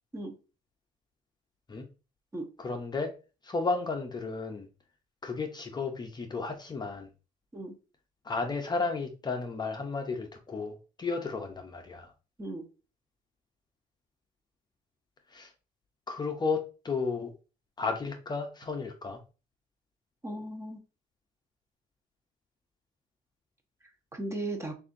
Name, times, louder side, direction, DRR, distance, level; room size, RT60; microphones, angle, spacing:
voice 1, 2.6-3.1 3.4-4.7 5.2-7.1 8.2-12.1 15.3-15.5 16.1-17.3 17.8-19.2, left 4 dB, 25° left, 5 dB, 0.6 m, -33 dB
voice 2, 20.2-20.8 24.1-24.7, right 1 dB, 15° right, 4 dB, 0.8 m, -36 dB
6.7 x 2.5 x 2.6 m, 0.33 s
cardioid pair, 110°, 17 cm